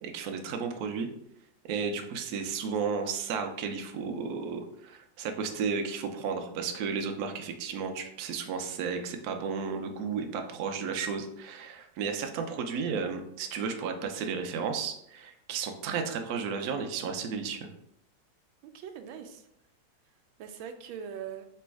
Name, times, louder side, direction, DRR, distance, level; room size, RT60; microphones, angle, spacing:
voice 1, 0.0-1.1 1.6-17.7, right 5 dB, 70° right, 5 dB, 0.9 m, -33 dB
voice 2, 18.6-19.5 20.4-21.5, right 8 dB, 85° right, 7 dB, 1.4 m, -42 dB
3.4 x 3.0 x 4.5 m, 0.76 s
omnidirectional pair, 2.1 m